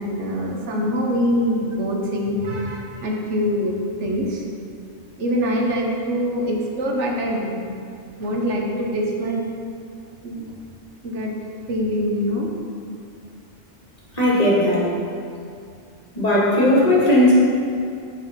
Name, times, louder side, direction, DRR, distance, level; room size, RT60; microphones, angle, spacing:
voice 1, 0.0-4.4 5.2-7.7 8.2-9.5 10.2-10.5 11.0-11.3 11.7-12.5, equal, 85° right, -1 dB, 1.4 m, -24 dB
voice 2, 14.1-14.9 16.1-17.4, left 1 dB, 35° left, -7 dB, 2.2 m, -16 dB
9.2 x 4.9 x 5.1 m, 2.4 s
omnidirectional pair, 1.2 m